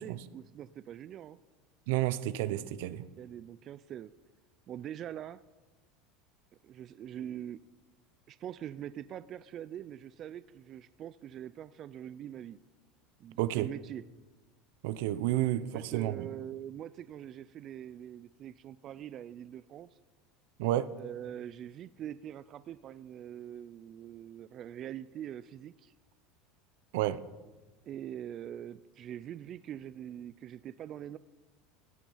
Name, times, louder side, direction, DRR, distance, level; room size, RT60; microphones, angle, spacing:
voice 1, 0.0-1.4 3.2-4.1 4.7-5.4 6.6-7.6 8.3-12.6 13.2-14.0 15.7-20.0 21.0-25.9 27.9-31.2, right 10 dB, 40° right, 0.4 m, -43 dB
voice 2, 1.9-3.0 13.4-13.7 14.8-16.3 20.6-20.9 26.9-27.2, right 14 dB, 75° right, 0.7 m, -31 dB
17.0 x 9.1 x 5.6 m
supercardioid pair, 135°, 0 cm